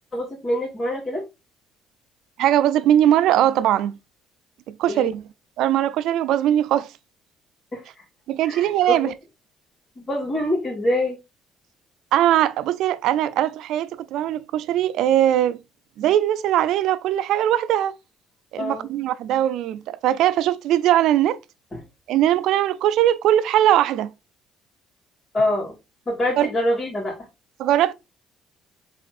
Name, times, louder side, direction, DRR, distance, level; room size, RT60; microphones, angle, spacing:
voice 1, 0.1-1.2 4.9-5.1 7.7-8.0 8.4-8.7 9.0-9.1 10.0-11.2 18.6-18.9 21.7-21.8 25.3-25.7 26.1-27.2, left 1 dB, 30° left, 2.8 m, -25 dB
voice 2, 2.4-4.0 4.7-5.2 5.6-6.9 8.3-9.1 12.1-15.6 16.0-17.9 18.5-21.4 22.1-24.1 26.4-26.5 27.6-27.9, right 12 dB, 75° right, 0.4 m, -20 dB
4.2 x 4.1 x 2.5 m
cardioid pair, 90°, 0 cm